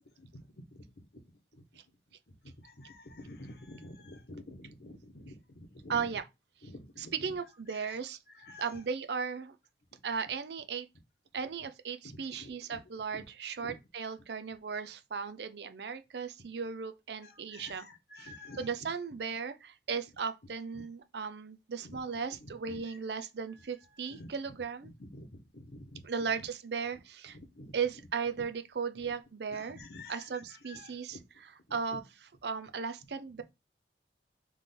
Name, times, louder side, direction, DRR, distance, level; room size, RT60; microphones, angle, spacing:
voice 1, 0.7-1.0 1.5-1.6 2.4-6.1 6.6-7.3 7.7-8.0 8.3-8.8 12.4-12.8 13.1-13.2 13.6-13.8 17.2-18.7 20.7-20.8 21.8-22.0 22.4-22.8 23.5-23.7 24.1-24.3 24.8-25.3 25.5-26.0 27.3-27.7 29.5-31.2 31.9-32.0, left 1 dB, 65° left, 1.1 m, -49 dB
voice 2, 5.9-6.2 7.0-8.2 8.6-9.5 10.0-10.9 11.3-17.9 18.2-18.3 18.6-24.9 26.0-27.4 27.7-29.8 30.1-32.0 32.4-33.4, right 6 dB, 70° right, 0.5 m, -36 dB
3.7 x 3.2 x 3.7 m
head